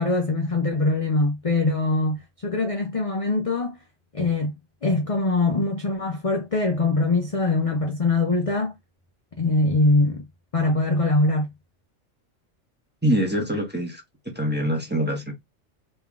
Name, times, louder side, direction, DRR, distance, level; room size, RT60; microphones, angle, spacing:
voice 1, 0.0-3.8 4.1-8.7 9.4-10.3 10.5-11.5, left 2 dB, 35° left, 0.6 m, -23 dB
voice 2, 13.0-14.0 14.3-15.3, equal, 10° right, 1.2 m, -24 dB
3.6 x 3.1 x 3.6 m
omnidirectional pair, 1.3 m